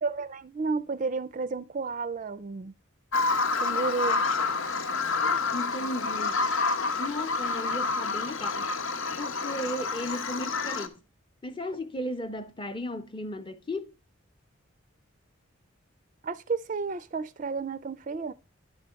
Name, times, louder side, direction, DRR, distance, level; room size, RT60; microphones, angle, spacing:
voice 1, 0.0-2.7 3.6-4.2 16.2-18.3, right 4 dB, 40° right, 0.4 m, -32 dB
Bird vocalization bird call bird song, 3.1-10.9, left 4 dB, 80° left, 0.9 m, -28 dB
voice 2, 5.5-6.5 7.0-8.8 9.2-11.0 11.4-13.9, left 1 dB, 25° left, 0.7 m, -35 dB
11.0 x 4.0 x 5.6 m
head